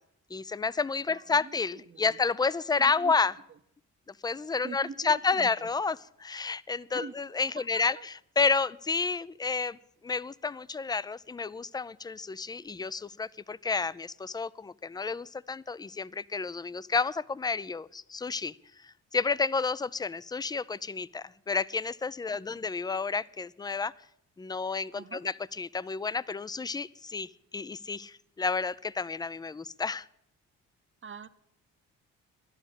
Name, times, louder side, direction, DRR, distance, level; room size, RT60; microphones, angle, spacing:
voice 1, 0.3-3.3 4.2-18.6 18.8-23.9 24.4-30.1, left 4 dB, 10° left, 20 dB, 0.4 m, -30 dB
voice 2, 1.1-2.2 2.8-3.2 3.5-3.6 4.6-5.7 6.9-8.1 22.3-22.6 24.9-25.2 31.0-31.3, right 5 dB, 35° right, 13 dB, 0.9 m, -45 dB
11.5 x 7.4 x 9.9 m, 0.74 s
hypercardioid pair, 55°, 36 cm